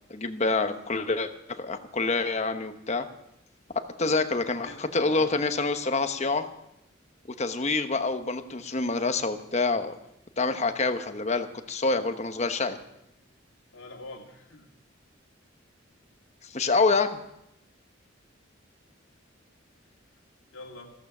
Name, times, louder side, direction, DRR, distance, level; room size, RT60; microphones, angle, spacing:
voice 1, 0.1-3.1 4.0-6.5 7.4-10.0 10.4-12.8 16.4-17.2, left 3 dB, 35° left, 8 dB, 1.0 m, -27 dB
voice 2, 4.6-5.3 13.7-14.7 20.5-20.9, left 2 dB, 85° left, 1 dB, 2.4 m, -44 dB
14.5 x 14.0 x 6.1 m, 0.84 s
head